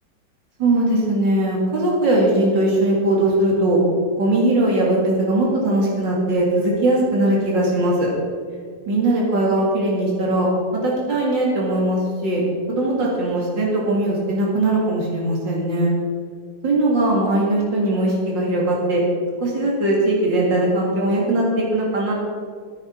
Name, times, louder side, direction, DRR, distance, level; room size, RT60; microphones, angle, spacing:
voice 1, 0.6-3.8 4.2-8.1 8.9-12.4 12.7-15.9 16.6-19.0 19.4-22.1, right 1 dB, 85° right, -3 dB, 2.9 m, -20 dB
14.5 x 9.9 x 4.4 m, 2.1 s
omnidirectional pair, 1.9 m